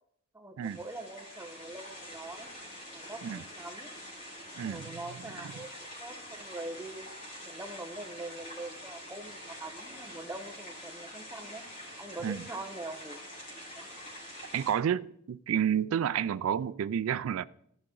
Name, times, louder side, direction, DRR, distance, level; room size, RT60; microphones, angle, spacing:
voice 1, 0.3-2.5 2.9-3.2 3.5-3.9 4.6-5.7 6.0-7.0 7.4-11.6 12.0-13.2 13.8-13.9, right 2 dB, 10° right, 0.9 m, -43 dB
sound 1, 0.6-14.7, equal, 40° left, 3.8 m, -46 dB
voice 2, 4.6-5.0 12.2-12.4 14.5-17.4, right 9 dB, 90° right, 0.3 m, -30 dB
15.0 x 6.0 x 3.8 m
head